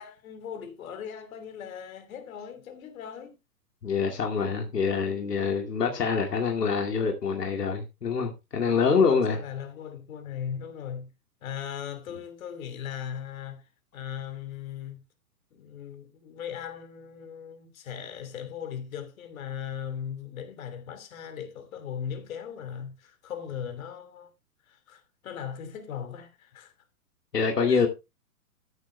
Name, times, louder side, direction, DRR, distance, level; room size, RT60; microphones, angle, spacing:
voice 1, 0.0-3.4 8.6-11.1 11.4-13.6 13.9-15.0 15.5-24.3 24.7-26.7 27.7-27.9, left 8 dB, 60° left, 3.0 m, -38 dB
voice 2, 3.8-9.4 27.3-27.9, left 5 dB, 80° left, 2.4 m, -25 dB
14.0 x 10.0 x 2.2 m
hypercardioid pair, 120°, 47 cm